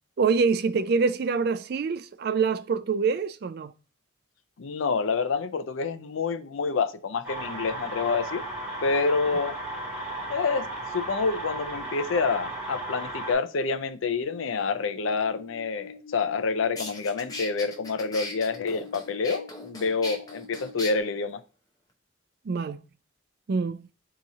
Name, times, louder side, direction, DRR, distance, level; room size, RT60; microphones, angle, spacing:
voice 1, 0.2-3.7 22.5-22.8 23.5-23.8, right 5 dB, 55° right, 0.3 m, -25 dB
voice 2, 4.6-8.4 8.8-9.6 10.3-10.7 10.9-21.4, left 4 dB, 85° left, 0.5 m, -27 dB
sound 1, 7.2-13.3, right 1 dB, 10° right, 1.9 m, -35 dB
sound 2, 14.2-21.0, left 4 dB, 35° left, 1.9 m, -46 dB
sound 3, 16.3-16.4 16.8-20.9, left 2 dB, 20° left, 0.7 m, -38 dB
4.1 x 2.9 x 3.6 m
head